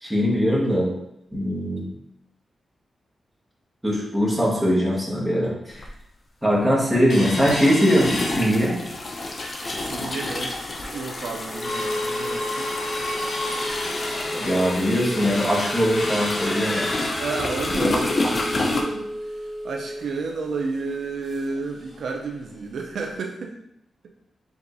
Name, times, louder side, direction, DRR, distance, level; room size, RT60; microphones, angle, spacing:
voice 1, 0.0-0.9 1.3-1.8 3.8-5.9 6.4-8.7 14.4-16.9, equal, 10° right, -5 dB, 1.3 m, -21 dB
sound 1, 5.8-5.9 7.3-18.8, left 2 dB, 40° left, 0.6 m, -29 dB
sound 2, 7.1-9.0 9.4-9.5 9.8-10.2 10.6-10.7 11.1-21.6 21.9-22.0 22.4-22.6 23.1-23.2, left 1 dB, 60° left, 1.0 m, -31 dB
voice 2, 9.8-10.5 10.9-12.7 17.2-23.5, right 4 dB, 75° right, 2 dB, 0.4 m, -31 dB
4.6 x 3.6 x 2.6 m, 0.79 s
wide cardioid pair, 120°, 0 cm